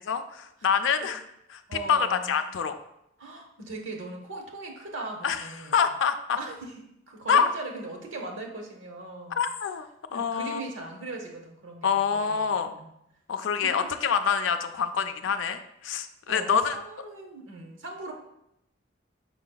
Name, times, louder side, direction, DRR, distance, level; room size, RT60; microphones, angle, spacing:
voice 1, 0.1-1.2 1.5-1.6 1.9-2.8 5.2-6.4 7.3-7.5 9.4-9.9 10.1-10.6 11.8-12.8 13.3-16.8, left 6 dB, 80° left, 9 dB, 0.4 m, -26 dB
voice 2, 1.7-2.4 3.2-5.8 6.4-6.7 7.1-9.4 10.1-12.9 13.6-13.9 16.3-18.1, right 2 dB, 85° right, 2 dB, 0.8 m, -39 dB
4.9 x 4.7 x 2.2 m, 0.80 s
head